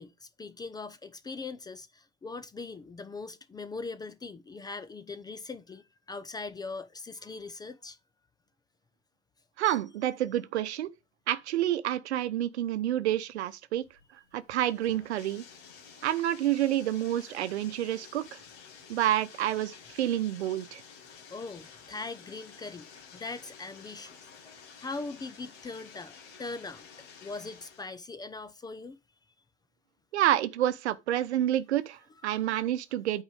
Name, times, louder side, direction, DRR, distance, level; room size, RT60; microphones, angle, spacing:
voice 1, 0.0-8.0 9.7-9.8 21.3-24.1 24.5-26.9 27.2-29.0 32.3-32.4, left 3 dB, 10° left, 0.5 m, -41 dB
voice 2, 9.6-10.9 11.3-13.8 14.3-15.4 16.0-18.4 18.9-20.8 30.1-33.2, right 12 dB, 65° right, 0.9 m, -28 dB
Bathtub (filling or washing), 13.8-27.9, left 6 dB, 65° left, 2.6 m, -51 dB
8.7 x 4.8 x 4.9 m
hypercardioid pair, 95°, 35 cm